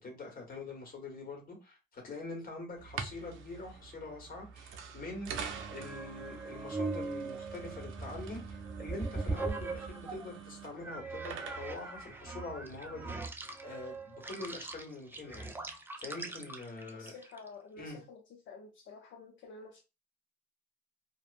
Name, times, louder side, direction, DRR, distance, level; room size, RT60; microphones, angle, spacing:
voice 1, 0.0-13.4 13.6-15.6 16.0-17.1 17.8-18.0, left 2 dB, 45° left, 1.4 m, -44 dB
sound 1, 2.8-13.1, right 6 dB, 85° right, 0.5 m, -46 dB
sound 2, 5.3-10.3 10.8-17.5, right 3 dB, 10° right, 0.4 m, -40 dB
voice 2, 16.8-18.2 18.5-19.8, left 4 dB, 70° left, 0.6 m, -50 dB
2.8 x 2.1 x 2.4 m
cardioid pair, 90°, 20 cm